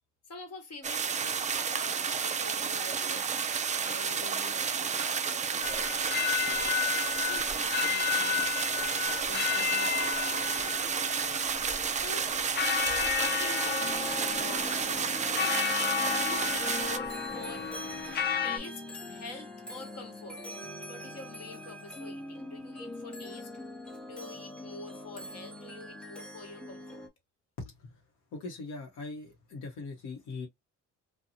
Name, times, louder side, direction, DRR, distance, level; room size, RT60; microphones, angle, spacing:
voice 1, 0.3-3.2 3.8-8.4 9.1-11.4 12.0-12.3 12.8-13.9 14.3-18.0 18.4-18.8 19.1-20.4 20.9-23.5 24.1-27.1, left 3 dB, 55° left, 1.3 m, -47 dB
waterfall in the forest rear, 0.8-17.0, right 6 dB, 25° right, 0.3 m, -31 dB
sound 1, 5.6-18.6, left 8 dB, 35° left, 0.5 m, -32 dB
sound 2, 13.8-27.1, left 1 dB, 5° left, 0.7 m, -43 dB
voice 2, 27.6-27.9 28.3-30.5, left 3 dB, 80° left, 1.0 m, -41 dB
2.6 x 2.3 x 2.8 m
cardioid pair, 90°, 30 cm